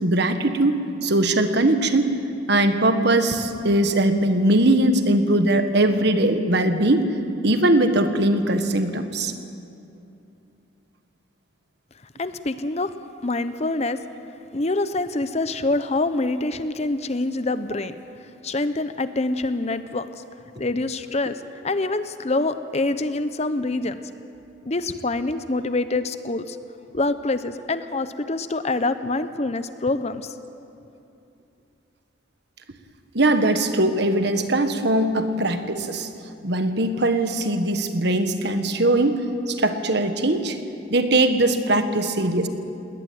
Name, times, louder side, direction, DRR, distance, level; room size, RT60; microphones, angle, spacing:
voice 1, 0.0-2.1 2.5-7.1 7.4-9.3 33.1-36.1 36.4-40.6 40.9-42.5, right 1 dB, 55° right, 8 dB, 1.5 m, -20 dB
voice 2, 12.2-12.9 13.2-14.0 14.5-18.0 18.4-20.1 20.6-24.0 24.7-26.6 26.9-30.3, left 2 dB, 30° left, 12 dB, 0.7 m, -25 dB
20.0 x 19.0 x 9.4 m, 2.7 s
head